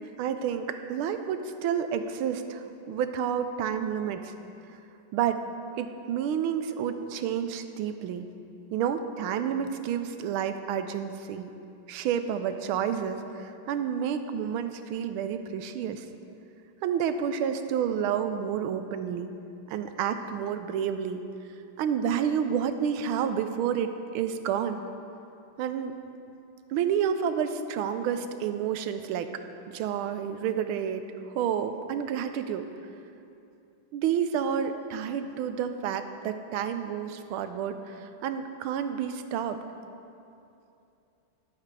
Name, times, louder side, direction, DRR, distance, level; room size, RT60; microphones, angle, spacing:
voice 1, 0.2-4.3 5.1-5.4 5.8-8.3 8.7-11.5 11.9-16.1 16.8-19.3 19.7-21.2 21.8-24.8 25.6-26.0 26.7-29.3 29.7-31.0 31.3-32.7 33.9-39.6, right 8 dB, 80° right, 9 dB, 1.5 m, -30 dB
14.0 x 10.5 x 3.3 m, 2.7 s
omnidirectional pair, 2.3 m